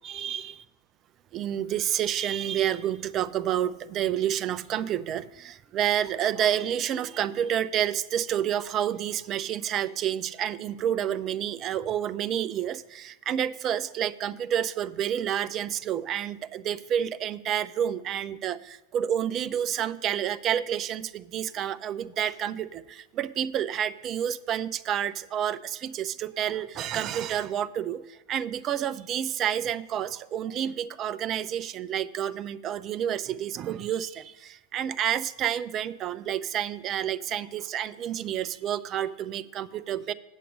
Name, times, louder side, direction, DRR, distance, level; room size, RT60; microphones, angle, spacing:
voice 1, 0.0-0.5 1.3-40.1, right 10 dB, 30° right, 14 dB, 0.4 m, -29 dB
8.3 x 7.1 x 5.1 m, 1.1 s
figure-of-eight pair, 90°, 0 cm